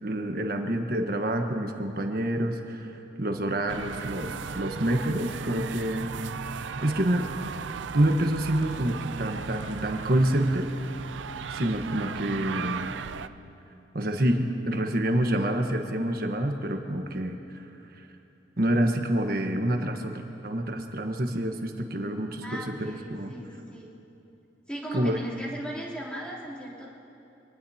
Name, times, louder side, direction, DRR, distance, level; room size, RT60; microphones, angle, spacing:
voice 1, 0.0-6.1 6.5-7.3 7.9-10.7 11.5-13.0 13.9-17.7 17.9-18.1 18.6-23.3 24.9-25.2, right 1 dB, 55° right, 4 dB, 1.3 m, -27 dB
sound 1, 3.7-13.3, right 6 dB, 85° right, 0.5 m, -37 dB
voice 2, 22.4-23.9 24.7-26.9, right 1 dB, 5° left, -8 dB, 3.3 m, -38 dB
25.5 x 19.5 x 2.9 m, 2.8 s
head